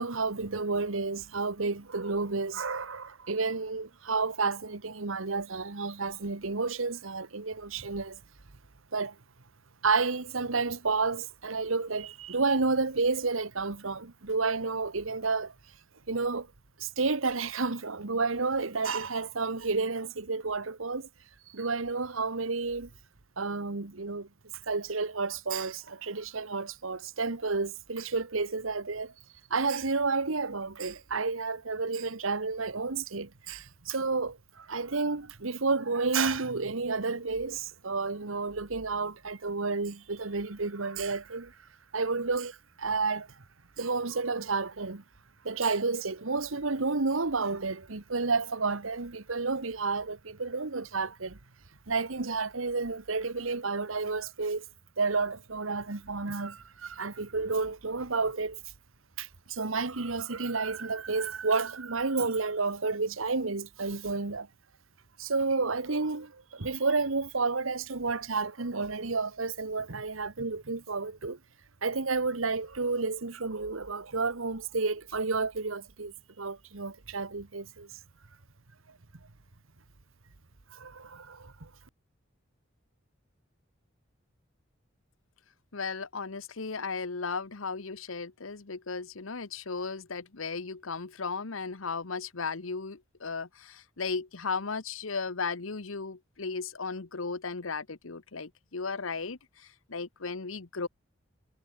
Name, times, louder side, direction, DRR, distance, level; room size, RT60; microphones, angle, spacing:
voice 1, 0.0-8.2 8.9-9.1 9.8-15.5 16.1-16.5 16.8-21.1 21.5-22.9 23.4-24.3 24.7-29.1 29.5-41.6 41.9-43.3 43.8-45.0 45.4-51.4 51.9-54.6 55.0-58.6 59.2-64.5 65.2-71.4 71.8-78.0 80.7-81.7, right 4 dB, 85° right, 1.4 m, -31 dB
voice 2, 85.7-100.9, left 4 dB, 85° left, 1.2 m, -36 dB
head